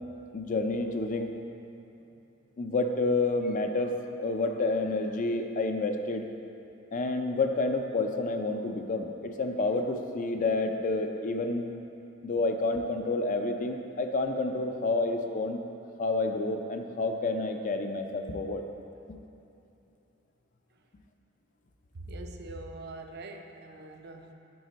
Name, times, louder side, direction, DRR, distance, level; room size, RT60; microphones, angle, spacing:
voice 1, 0.3-1.3 2.6-6.3 6.9-11.7 12.2-15.6 16.0-18.6, left 2 dB, 40° left, 5 dB, 0.4 m, -29 dB
voice 2, 21.9-24.3, right 2 dB, 55° right, 5 dB, 0.5 m, -43 dB
9.3 x 4.1 x 4.0 m, 2.8 s
head